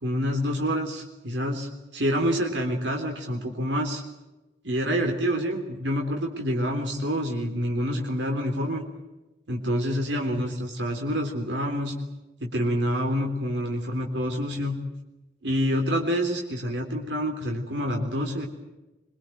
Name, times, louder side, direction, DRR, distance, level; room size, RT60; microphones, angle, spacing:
voice 1, 0.0-4.0 4.6-8.8 9.5-11.9 12.4-14.8 15.4-18.5, equal, 85° right, 2 dB, 3.6 m, -27 dB
25.0 x 23.0 x 8.0 m, 1.0 s
head